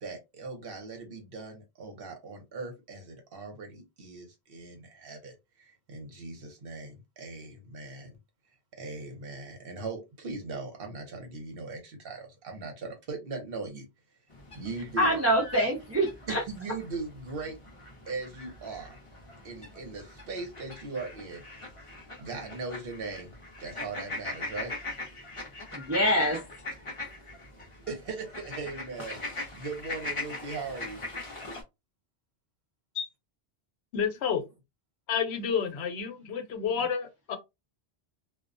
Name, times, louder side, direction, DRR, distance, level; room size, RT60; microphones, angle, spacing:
voice 1, 0.0-8.2 8.8-13.9 14.5-15.2 16.3-17.6 18.1-19.0 19.4-21.4 22.2-23.3 23.6-24.7 27.0-27.2 27.9-31.0, right 3 dB, 60° right, 1.0 m, -39 dB
sound 1, 14.3-31.6, left 2 dB, 35° left, 0.7 m, -41 dB
voice 2, 15.0-16.4 25.7-26.4, equal, 20° right, 0.4 m, -25 dB
voice 3, 33.9-34.4 35.1-37.4, left 7 dB, 75° left, 0.9 m, -30 dB
2.3 x 2.1 x 2.5 m
omnidirectional pair, 1.1 m